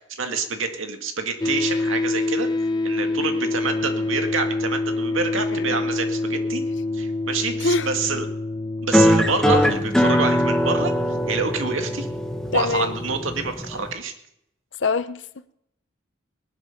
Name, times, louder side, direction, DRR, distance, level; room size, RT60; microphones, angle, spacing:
voice 1, 0.0-2.5 2.8-6.6 6.9-8.3 8.8-12.1 12.5-14.1, right 4 dB, 85° right, 5 dB, 2.1 m, -27 dB
sound 1, 1.4-13.5, left 2 dB, 20° left, 0.8 m, -27 dB
sound 2, 8.9-13.9, equal, 5° left, 1.3 m, -21 dB
voice 2, 12.5-12.9 14.8-15.2, left 4 dB, 70° left, 14 dB, 0.7 m, -24 dB
19.5 x 11.5 x 5.9 m, 0.77 s
head